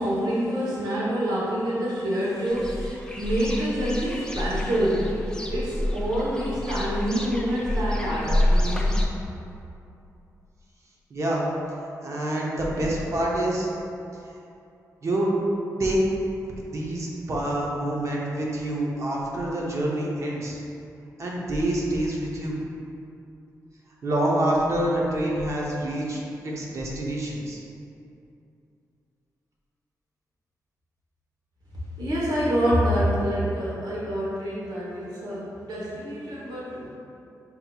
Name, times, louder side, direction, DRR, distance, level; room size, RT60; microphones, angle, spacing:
voice 1, 0.0-5.2 5.5-8.9 32.0-36.9, equal, 90° right, -6 dB, 1.0 m, -26 dB
sound 1, 2.5-9.1, left 1 dB, 10° left, 0.4 m, -27 dB
voice 2, 11.1-11.5 11.8-13.7 15.0-15.3 15.8-16.0 16.7-20.6 21.2-22.6 24.0-27.6, right 1 dB, 50° right, -4 dB, 0.7 m, -27 dB
5.5 x 2.8 x 2.3 m, 2.7 s
wide cardioid pair, 110°, 7 cm